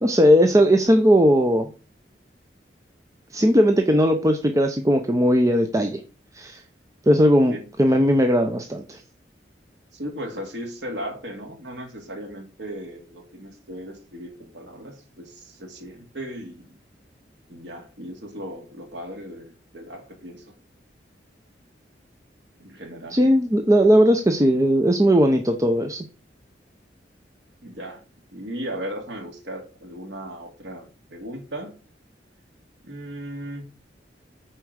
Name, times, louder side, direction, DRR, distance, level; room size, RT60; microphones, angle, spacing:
voice 1, 0.0-1.7 3.3-6.0 6.3-6.6 7.1-9.0 23.1-26.1, equal, 20° right, 5 dB, 0.7 m, -18 dB
voice 2, 9.9-16.7 17.5-20.4 22.6-23.2 27.6-28.0 28.3-31.7 32.8-33.7, equal, 80° right, 3 dB, 2.3 m, -36 dB
8.4 x 4.5 x 6.3 m, 0.36 s
head